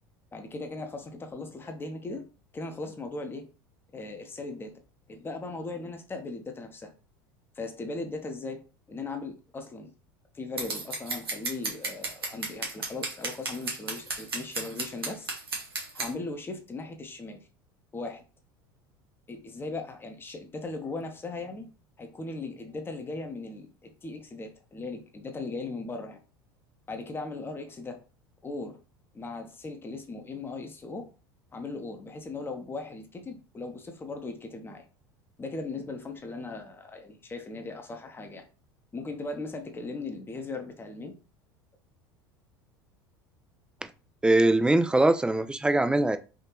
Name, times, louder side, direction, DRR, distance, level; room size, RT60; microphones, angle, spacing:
voice 1, 0.3-2.2 2.5-3.5 3.9-4.7 5.1-6.9 7.5-8.6 8.9-9.9 10.3-15.3 15.9-17.4 17.9-18.2 19.3-21.7 22.0-26.2 26.9-28.0 28.4-28.8 29.1-31.1 31.5-34.8 35.4-38.4 38.9-41.1, left 3 dB, 20° left, 0.8 m, -38 dB
Scissors, 10.6-16.1, right 3 dB, 90° right, 0.9 m, -33 dB
voice 2, 44.2-46.2, right 2 dB, 10° right, 0.4 m, -22 dB
3.6 x 2.7 x 2.8 m
hypercardioid pair, 75°, 12 cm